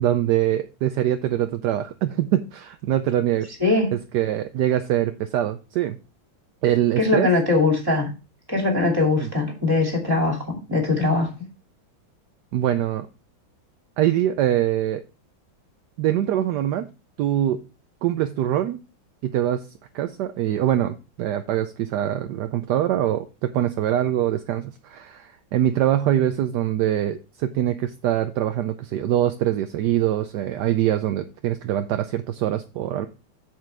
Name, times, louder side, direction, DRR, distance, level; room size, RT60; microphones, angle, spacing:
voice 1, 0.0-3.5 4.1-6.0 6.6-7.3 9.2-9.3 12.5-13.1 14.0-15.0 16.0-16.9 17.2-17.6 18.0-18.8 19.2-19.6 19.9-33.1, right 12 dB, 75° right, 9 dB, 1.1 m, -23 dB
voice 2, 3.6-3.9 7.0-8.1 8.5-11.3, left 3 dB, 10° right, 1 dB, 2.4 m, -21 dB
7.7 x 7.5 x 3.3 m, 0.31 s
omnidirectional pair, 2.1 m